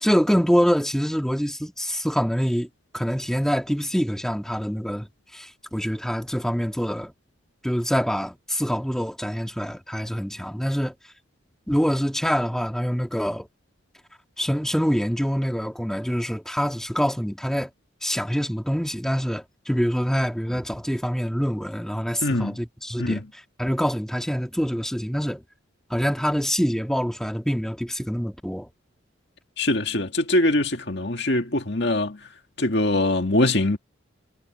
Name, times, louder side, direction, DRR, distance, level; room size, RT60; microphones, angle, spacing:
voice 1, 0.0-2.7 2.9-5.1 5.3-7.1 7.6-10.9 11.7-13.5 14.4-17.7 18.0-23.2 23.6-25.4 25.9-28.7, equal, ahead, 2.5 m, -25 dB
voice 2, 22.2-22.6 23.0-23.3 29.6-32.2 32.6-33.8, left 1 dB, 55° left, 2.1 m, -23 dB
head